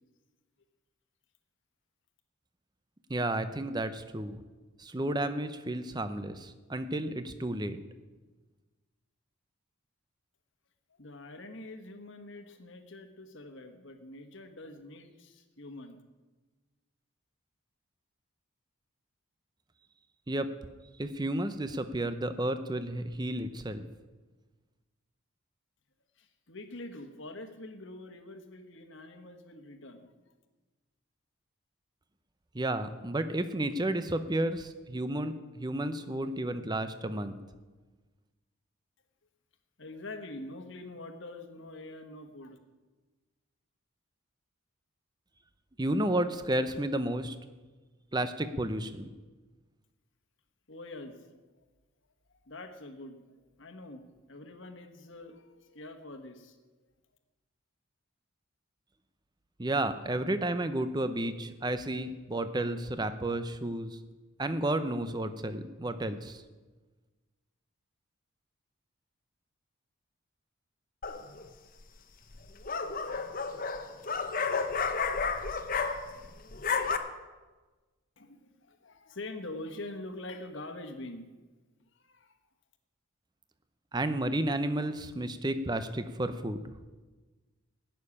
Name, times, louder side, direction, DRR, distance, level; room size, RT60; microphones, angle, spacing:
voice 1, 3.1-4.4 4.8-7.8 20.3-20.5 21.0-23.8 32.5-37.4 45.8-47.4 48.1-49.1 59.6-64.0 64.4-66.4 83.9-86.6, right 1 dB, 20° right, 10 dB, 0.6 m, -32 dB
voice 2, 11.0-16.0 26.2-30.4 39.8-42.6 50.7-51.6 52.4-53.2 53.6-56.6 78.2-81.3 81.9-82.4, left 2 dB, 60° left, 7 dB, 1.4 m, -45 dB
sound 1, 71.0-71.5 72.3-76.3 76.5-77.0, left 5 dB, 40° left, 0.9 m, -31 dB
16.5 x 6.7 x 9.8 m, 1.3 s
head